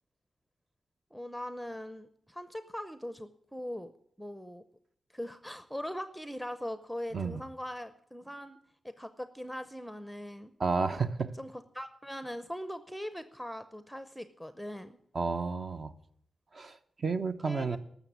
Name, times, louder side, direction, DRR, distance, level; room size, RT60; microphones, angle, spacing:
voice 1, 1.1-3.9 4.2-4.6 5.1-8.6 8.8-10.5 11.4-15.0 17.4-17.8, equal, ahead, 11 dB, 0.6 m, -41 dB
voice 2, 10.6-11.3 15.1-15.9 16.5-17.8, right 4 dB, 50° right, 9 dB, 0.9 m, -31 dB
12.5 x 7.1 x 9.4 m, 0.68 s
cardioid pair, 85°, 0 cm